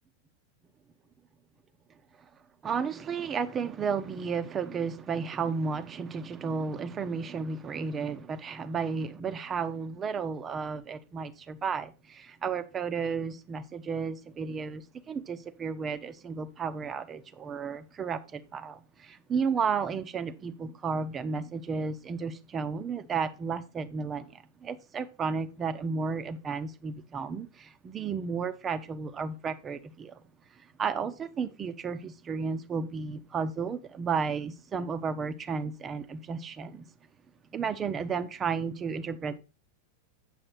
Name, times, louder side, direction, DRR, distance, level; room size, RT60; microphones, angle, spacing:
voice 1, 2.6-30.2 30.5-36.8 37.5-39.4, right 5 dB, 25° right, 0.9 m, -33 dB
8.9 x 7.0 x 4.0 m
figure-of-eight pair, 90°, 0 cm